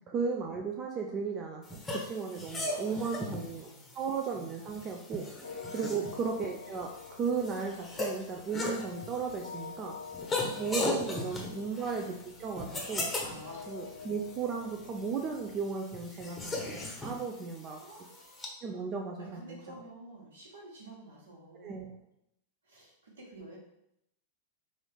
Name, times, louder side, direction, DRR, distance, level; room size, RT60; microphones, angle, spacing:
voice 1, 0.1-1.6 1.9-3.7 3.9-5.3 5.7-10.0 10.6-13.1 13.7-16.6 17.0-17.8 18.6-19.6 21.6-21.9, right 5 dB, 30° right, 2 dB, 0.4 m, -35 dB
sound 1, 1.7-18.5, left 2 dB, 15° left, 0.8 m, -39 dB
voice 2, 2.7-4.0 4.6-4.8 10.7-11.1 11.5-11.7 13.2-13.6 17.7-18.8 19.2-22.0 22.6-23.6, right 1 dB, 70° right, -4 dB, 1.3 m, -51 dB
sound 2, 5.4-15.7, left 5 dB, 80° left, 0.3 m, -47 dB
3.7 x 2.5 x 3.4 m, 0.80 s
figure-of-eight pair, 95°, 0 cm